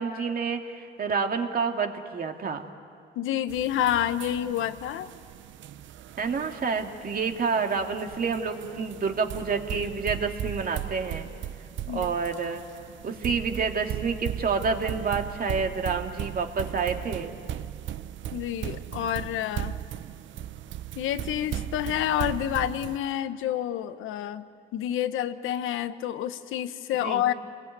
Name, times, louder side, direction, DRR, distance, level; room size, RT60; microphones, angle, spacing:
voice 1, 0.0-2.7 6.2-11.3 11.9-12.6 13.0-17.3 27.0-27.2, right 5 dB, 50° right, 4 dB, 2.3 m, -28 dB
voice 2, 3.1-5.1 11.9-12.1 18.3-19.7 21.0-24.4 24.7-27.3, left 11 dB, 90° left, 11 dB, 1.1 m, -28 dB
sound 1, 3.5-23.0, right 11 dB, 70° right, 0.8 m, -37 dB
28.5 x 21.0 x 9.3 m, 2.5 s
cardioid pair, 90°, 20 cm